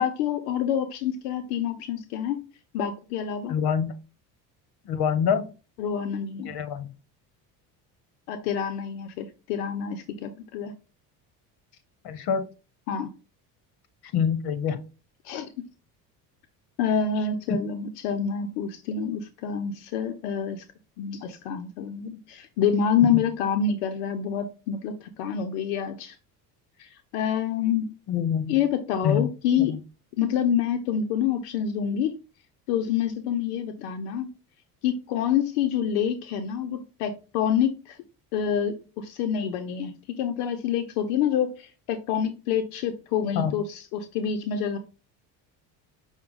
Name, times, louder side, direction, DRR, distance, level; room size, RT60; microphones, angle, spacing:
voice 1, 0.0-2.4 2.7-3.6 5.8-6.5 8.3-10.7 12.9-13.1 15.2-15.5 16.8-20.6 21.0-26.2 26.8-27.9 28.5-29.8 30.2-32.2 32.7-34.3 34.8-38.0 38.3-44.8, left 8 dB, 80° left, 7 dB, 0.6 m, -27 dB
voice 2, 3.5-3.9 4.8-5.5 6.5-6.9 12.0-12.4 14.1-14.8 17.5-17.6 23.0-23.2 28.1-28.6 29.0-29.3 29.6-29.8 43.3-43.5, left 7 dB, 55° left, 11 dB, 1.0 m, -25 dB
5.7 x 2.2 x 3.7 m, 0.32 s
supercardioid pair, 75°, 45 cm